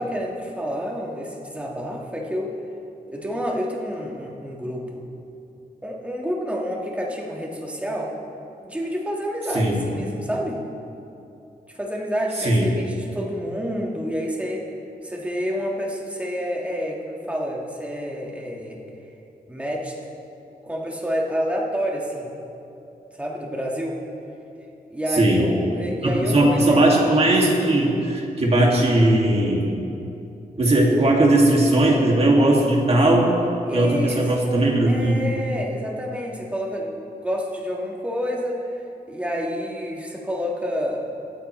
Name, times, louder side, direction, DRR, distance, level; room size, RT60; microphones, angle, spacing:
voice 1, 0.0-2.5 3.1-5.1 5.8-8.1 8.6-10.6 11.7-14.6 15.0-18.8 19.5-20.0 20.6-22.3 23.1-24.0 24.9-26.8 33.7-34.2 34.9-38.7 39.1-41.1, equal, 10° right, -2 dB, 1.7 m, -28 dB
voice 2, 25.1-25.5 26.0-29.7 30.6-33.3 33.7-35.3, right 1 dB, 40° right, -2 dB, 2.2 m, -18 dB
24.5 x 9.0 x 3.2 m, 2.8 s
wide cardioid pair, 130°, 16 cm